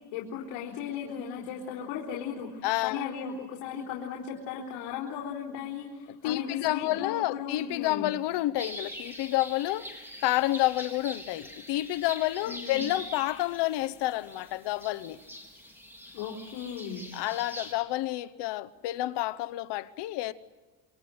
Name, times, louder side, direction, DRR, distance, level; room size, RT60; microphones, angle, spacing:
voice 1, 0.1-8.1 12.5-12.8 16.1-17.1, left 7 dB, 80° left, 4.4 m, -37 dB
voice 2, 2.6-3.0 6.2-9.9 10.2-15.2 17.1-20.3, left 16 dB, 65° left, 1.0 m, -29 dB
sound 1, 8.6-17.7, equal, 5° right, 4.0 m, -44 dB
27.5 x 24.0 x 7.9 m
cardioid pair, 160°, 45 cm